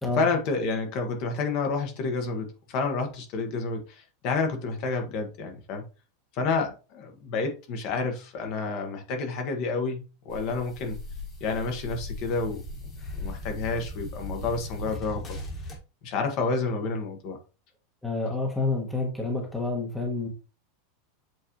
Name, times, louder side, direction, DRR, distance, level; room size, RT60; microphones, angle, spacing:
voice 1, 0.1-5.8 6.3-11.0 11.4-12.6 13.1-15.4 16.0-17.4, left 4 dB, 35° left, 1.4 m, -29 dB
sound 1, 10.3-15.8, left 1 dB, 20° left, 1.7 m, -38 dB
voice 2, 18.0-20.3, left 3 dB, 5° left, 1.2 m, -28 dB
7.7 x 4.3 x 3.1 m
supercardioid pair, 180°, 0 cm